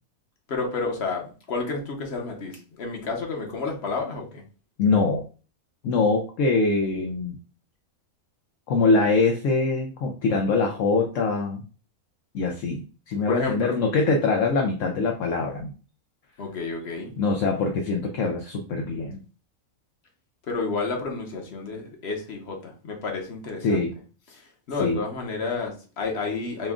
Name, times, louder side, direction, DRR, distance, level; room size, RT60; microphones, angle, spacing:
voice 1, 0.5-4.4 13.3-13.8 16.4-17.1 20.5-23.9 24.3-26.7, left 4 dB, 50° left, 1 dB, 1.3 m, -30 dB
voice 2, 4.8-5.2 5.8-7.3 8.7-11.6 12.3-15.7 17.2-19.2 23.6-23.9 24.8-25.0, left 3 dB, 70° left, 2 dB, 1.0 m, -23 dB
5.1 x 2.4 x 3.6 m, 0.37 s
omnidirectional pair, 1.4 m